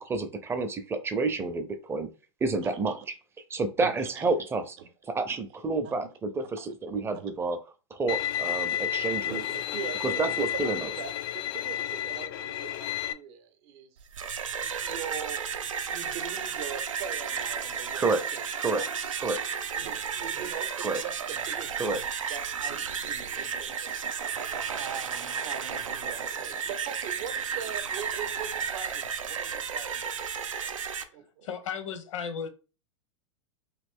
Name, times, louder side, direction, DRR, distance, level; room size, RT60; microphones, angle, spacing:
voice 1, 0.0-2.1 2.4-3.0 3.5-4.8 5.1-7.6 7.9-9.4 10.2-10.9 18.0-18.2 18.6-18.8 19.2-19.4 20.8-21.0 21.8-22.0, right 3 dB, 15° right, 0.5 m, -29 dB
voice 2, 3.8-4.2 4.8-4.9 5.8-5.9 6.4-6.5 7.1-7.3 9.3-14.0 14.5-15.5 15.8-19.4 19.8-22.0 22.3-23.9 24.3-30.0 30.6-30.7 31.1-31.5, right 8 dB, 55° right, 0.7 m, -42 dB
Bowed string instrument, 8.1-13.1, left 10 dB, 50° left, 0.4 m, -31 dB
sound 1, 14.0-31.0, right 7 dB, 90° right, 0.5 m, -33 dB
voice 3, 31.4-32.5, left 7 dB, 75° left, 0.9 m, -35 dB
3.1 x 2.5 x 3.5 m
hypercardioid pair, 105°, 16 cm